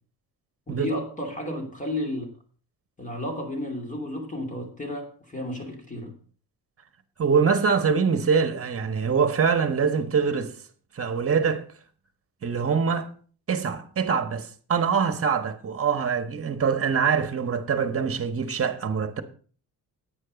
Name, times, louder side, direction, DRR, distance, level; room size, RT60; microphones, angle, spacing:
voice 1, 0.7-2.3 3.0-6.1, left 1 dB, 20° left, 2.9 m, -32 dB
voice 2, 7.2-10.6 10.9-11.6 12.4-13.1 13.5-19.2, right 6 dB, 40° right, 1.4 m, -24 dB
9.7 x 9.1 x 5.2 m
cardioid pair, 115°, 37 cm